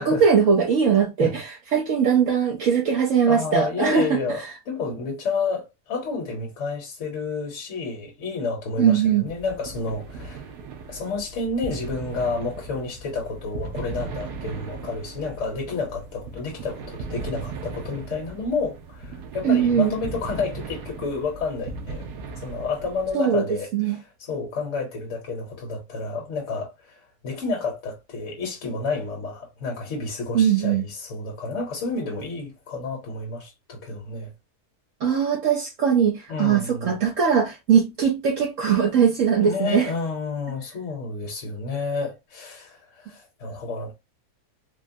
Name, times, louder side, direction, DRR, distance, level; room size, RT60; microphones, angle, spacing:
voice 1, 0.0-4.2 8.8-9.2 19.4-19.9 23.1-23.4 23.7-24.0 30.3-30.8 35.0-39.9, right 7 dB, 65° right, 1.0 m, -20 dB
voice 2, 3.3-10.5 10.9-22.1 22.3-34.3 36.3-37.0 39.4-43.9, left 4 dB, 55° left, 1.1 m, -30 dB
sound 1, 9.3-23.1, right 4 dB, 90° right, 1.2 m, -38 dB
3.6 x 2.0 x 2.6 m
omnidirectional pair, 1.6 m